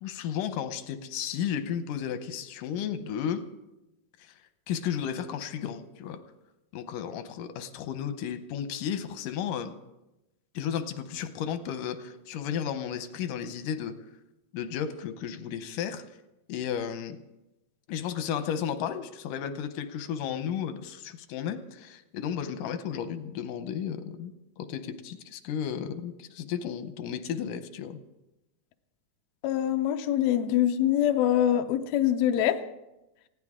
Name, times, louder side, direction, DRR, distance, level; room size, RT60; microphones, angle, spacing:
voice 1, 0.0-3.4 4.2-4.3 4.7-6.2 6.7-9.8 10.6-13.9 14.5-16.0 16.5-17.2 17.9-28.0, left 8 dB, 90° left, 10 dB, 2.5 m, -33 dB
voice 2, 29.4-32.6, left 11 dB, 70° left, 7 dB, 1.9 m, -24 dB
20.5 x 16.0 x 3.7 m, 0.95 s
omnidirectional pair, 3.6 m